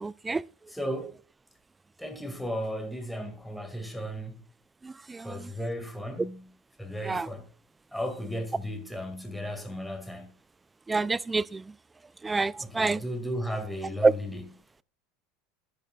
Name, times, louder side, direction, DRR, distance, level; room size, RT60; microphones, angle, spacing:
voice 1, 0.0-0.4 7.1-7.3 10.9-11.4 12.2-13.0 14.0-14.1, right 3 dB, 15° right, 0.4 m, -25 dB
voice 2, 0.7-1.2 2.0-4.4 5.2-6.5 6.8-7.5 7.9-10.3 12.5-14.5, equal, 5° left, 2.1 m, -35 dB
12.5 x 10.5 x 2.4 m
hypercardioid pair, 85°, 0 cm